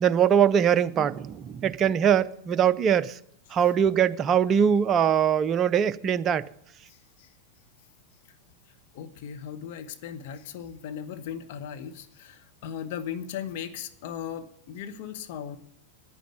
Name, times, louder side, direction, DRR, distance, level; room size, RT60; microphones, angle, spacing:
voice 1, 0.0-3.2 3.5-6.5, right 8 dB, 30° right, 0.5 m, -22 dB
voice 2, 6.9-7.3 8.9-15.6, left 8 dB, 50° left, 1.2 m, -37 dB
9.8 x 9.4 x 9.1 m
figure-of-eight pair, 90°, 0 cm